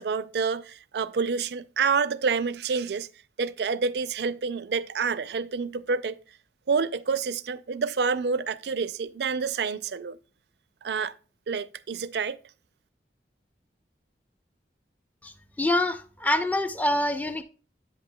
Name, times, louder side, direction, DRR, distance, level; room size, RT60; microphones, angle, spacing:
voice 1, 0.0-3.1 3.4-6.2 6.7-10.2 10.8-11.1 11.5-12.4, right 5 dB, 75° right, 0.4 m, -28 dB
voice 2, 15.2-17.4, left 1 dB, 10° left, 0.5 m, -26 dB
8.5 x 7.5 x 2.2 m
head